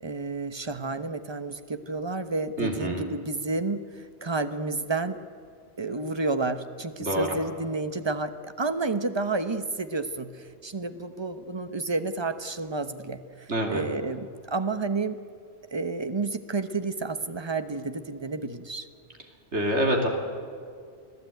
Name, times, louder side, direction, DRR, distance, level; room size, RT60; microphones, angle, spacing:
voice 1, 0.0-5.2 5.8-15.2 15.7-18.9, right 3 dB, 25° right, 10 dB, 1.0 m, -30 dB
voice 2, 2.6-3.0 7.0-7.3 13.5-13.8 19.5-20.1, equal, 80° right, 2 dB, 3.5 m, -26 dB
25.0 x 15.5 x 9.2 m, 2.2 s
omnidirectional pair, 1.1 m